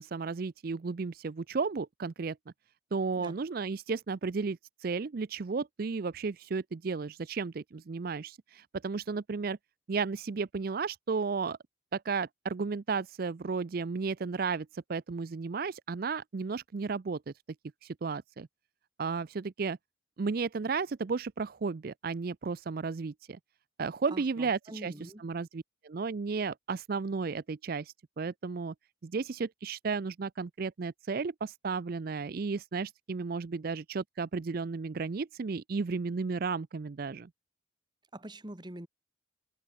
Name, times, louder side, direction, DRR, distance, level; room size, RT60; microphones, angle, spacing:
voice 1, 0.0-2.4 2.9-9.6 9.9-11.6 11.9-17.2 17.8-18.5 19.0-19.8 20.2-23.4 23.8-24.9 25.2-28.7 29.0-37.3, right 4 dB, 50° right, 0.4 m, -33 dB
voice 2, 24.1-25.3 38.1-38.9, right 1 dB, 20° right, 1.5 m, -45 dB
head